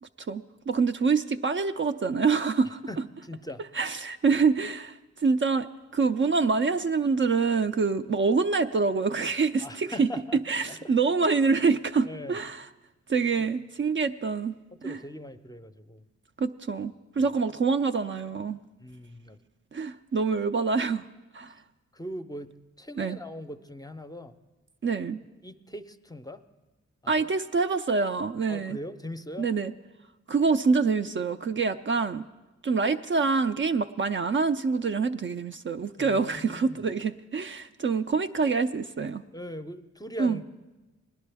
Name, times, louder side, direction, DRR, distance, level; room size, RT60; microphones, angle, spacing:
voice 1, 0.3-2.8 3.7-10.1 10.5-12.7 13.1-14.5 14.8-15.0 16.4-18.6 19.7-21.1 21.3-21.6 23.0-23.2 24.8-25.2 27.1-28.8 29.4-29.7 30.3-32.3 32.6-39.2 40.2-40.4, right 4 dB, 40° right, 8 dB, 0.4 m, -26 dB
voice 2, 2.9-3.6 9.6-10.4 10.7-10.9 12.0-12.4 13.4-13.5 14.8-16.1 17.2-17.3 18.8-19.4 21.9-24.4 25.4-26.4 27.0-27.3 28.5-29.5 36.0-36.8 39.3-40.4, left 1 dB, 15° left, 9 dB, 0.6 m, -40 dB
18.5 x 11.0 x 3.4 m, 1.1 s
cardioid pair, 45°, 30 cm